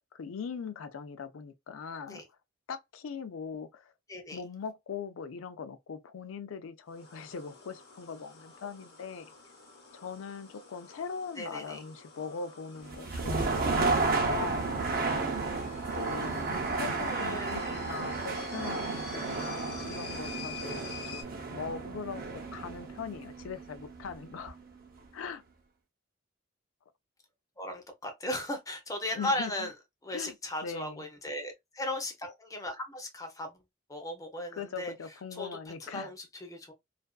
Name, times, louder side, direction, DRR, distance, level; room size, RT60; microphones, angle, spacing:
voice 1, 0.1-2.2 2.7-3.9 4.3-9.3 9.9-14.8 15.4-22.2 22.5-24.6 25.1-25.4 29.1-29.7 30.1-30.3 30.6-31.1 34.6-36.1, left 6 dB, 85° left, 0.4 m, -41 dB
sound 1, 6.9-21.2, left 5 dB, 50° left, 0.9 m, -48 dB
voice 2, 11.4-11.8 16.2-16.3 16.6-17.8 27.6-29.7 30.0-33.5 33.9-34.9 35.4-35.5 35.8-36.7, left 1 dB, 15° left, 0.6 m, -37 dB
sound 2, 12.8-24.7, right 3 dB, 50° right, 0.6 m, -32 dB
2.4 x 2.3 x 2.3 m
head